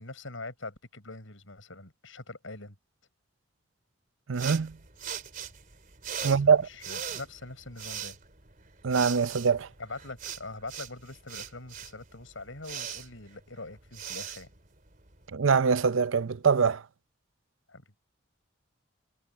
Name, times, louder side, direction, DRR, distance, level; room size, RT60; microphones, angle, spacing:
voice 1, 0.0-2.7 6.2-8.2 9.8-14.5 17.7-18.0, left 2 dB, 75° left, 6.2 m, -43 dB
sound 1, 4.3-15.3, right 8 dB, 40° right, 3.3 m, -41 dB
voice 2, 4.3-4.7 6.2-6.7 8.8-9.7 15.3-16.8, right 6 dB, 75° right, 0.6 m, -23 dB
head